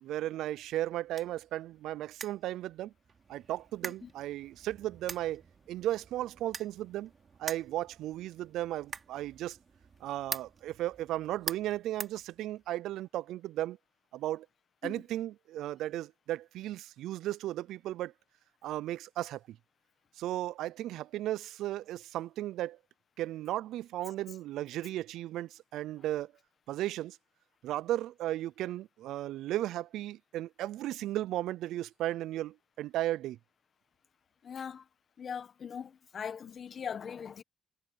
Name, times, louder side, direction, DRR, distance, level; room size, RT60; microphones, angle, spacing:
voice 1, 0.0-2.9 3.3-5.4 5.7-7.1 7.4-9.6 10.0-13.8 14.1-14.5 14.8-18.1 18.6-19.6 20.2-22.8 23.2-26.3 26.7-27.2 27.6-33.4, right 14 dB, 85° right, 0.3 m, -35 dB
sound 1, 0.6-12.9, right 6 dB, 45° right, 3.0 m, -46 dB
voice 2, 34.4-34.9 35.2-37.4, left 7 dB, 50° left, 1.3 m, -40 dB
cardioid pair, 90°, 0 cm